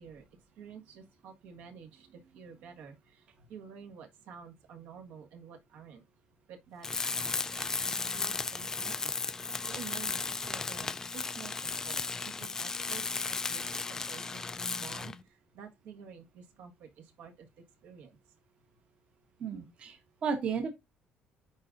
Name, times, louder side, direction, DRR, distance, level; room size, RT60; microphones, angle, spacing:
voice 1, 0.0-6.0 6.5-13.6 13.9-18.2, right 7 dB, 70° right, 1.5 m, -50 dB
Tools, 6.8-15.2, left 4 dB, 15° left, 0.3 m, -35 dB
voice 2, 19.4-20.7, right 6 dB, 35° right, 1.1 m, -34 dB
10.0 x 3.8 x 2.5 m
cardioid pair, 170°, 3 cm